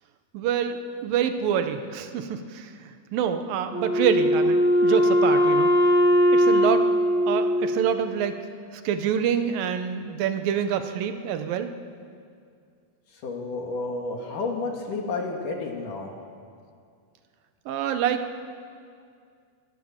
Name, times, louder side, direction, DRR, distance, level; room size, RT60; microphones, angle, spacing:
voice 1, 0.3-0.8 1.0-2.7 3.1-5.7 6.3-6.9 7.3-8.3 8.8-11.7 17.7-18.4, right 8 dB, 75° right, 8 dB, 2.8 m, -26 dB
Wind instrument woodwind instrument, 3.7-8.2, equal, 5° right, 4.2 m, -20 dB
voice 2, 13.2-16.1, left 3 dB, 60° left, 1 dB, 3.6 m, -31 dB
26.0 x 18.0 x 7.4 m, 2.3 s
omnidirectional pair, 4.3 m